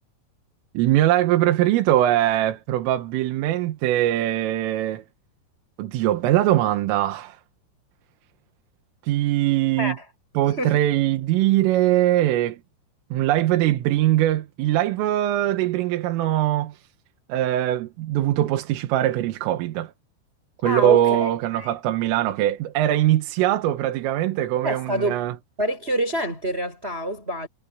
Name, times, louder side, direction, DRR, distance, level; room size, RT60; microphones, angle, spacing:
voice 1, 0.8-5.0 5.8-7.4 9.0-10.0 10.4-12.6 13.1-16.8 17.3-19.9 20.6-25.4, right 13 dB, 85° right, 4.0 m, -21 dB
voice 2, 20.6-21.7 24.6-25.2 25.6-27.5, right 1 dB, 10° right, 7.3 m, -27 dB
omnidirectional pair, 5.8 m